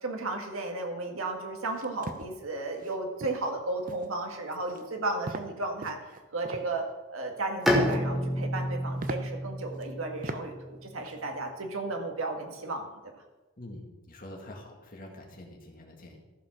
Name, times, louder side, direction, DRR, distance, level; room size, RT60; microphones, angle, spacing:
voice 1, 0.0-6.0 6.3-6.8 7.1-13.1, right 2 dB, 80° right, 3 dB, 1.8 m, -34 dB
sound 1, 1.7-2.3 2.8-3.0 3.2-3.5 3.9-4.2 4.5-4.9 5.3-5.5 5.8-6.7 7.6-8.2 8.6-8.7 9.0-9.2 9.8-9.9 10.2-10.4 10.8-11.2, right 3 dB, 40° right, 0.6 m, -39 dB
Bowed string instrument, 7.7-11.3, equal, ahead, 1.3 m, -30 dB
voice 2, 13.6-16.2, left 1 dB, 40° left, 1 dB, 1.9 m, -46 dB
14.0 x 5.2 x 5.9 m, 1.2 s
head